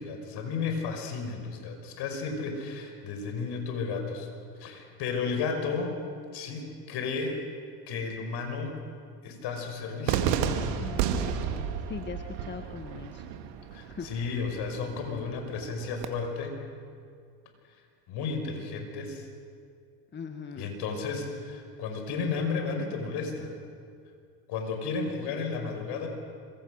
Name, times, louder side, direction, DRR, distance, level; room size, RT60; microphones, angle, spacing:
voice 1, 0.0-4.3 4.6-6.0 6.3-7.4 7.9-8.8 9.2-10.4 13.7-16.6 18.1-19.3 20.6-23.6 24.5-26.1, left 4 dB, 55° left, 4 dB, 5.6 m, -33 dB
Cheering / Fireworks, 10.1-16.1, right 8 dB, 60° right, 2.3 m, -32 dB
voice 2, 10.8-13.3 13.9-14.1 20.1-20.7, left 5 dB, 20° left, 6 dB, 1.4 m, -41 dB
26.5 x 24.0 x 6.5 m, 2.3 s
hypercardioid pair, 90°, 49 cm